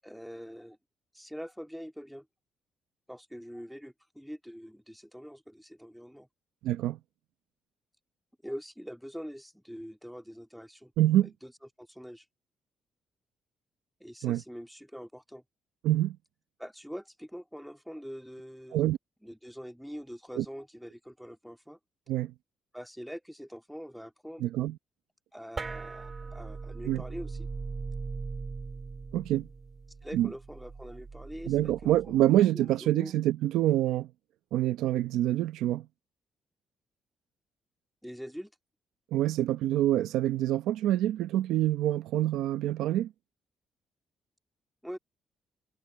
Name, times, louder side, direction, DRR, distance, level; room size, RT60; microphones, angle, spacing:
voice 1, 0.0-0.8 1.1-2.3 3.1-6.3 8.4-10.9 11.2-11.5 11.8-12.3 14.0-15.4 16.6-18.8 19.2-21.8 22.7-24.4 25.3-27.5 30.0-33.1 38.0-38.5 44.8-45.0, equal, ahead, 2.1 m, -44 dB
voice 2, 6.6-7.0 11.0-11.3 14.2-14.4 15.8-16.2 18.7-19.0 20.4-20.5 22.1-22.3 24.4-24.8 26.8-27.0 29.1-29.5 30.1-30.3 31.5-34.1 34.5-35.9 39.1-43.1, right 13 dB, 90° right, 0.9 m, -26 dB
sound 1, 25.6-32.3, right 4 dB, 35° right, 3.8 m, -40 dB
cardioid pair, 90°, 0 cm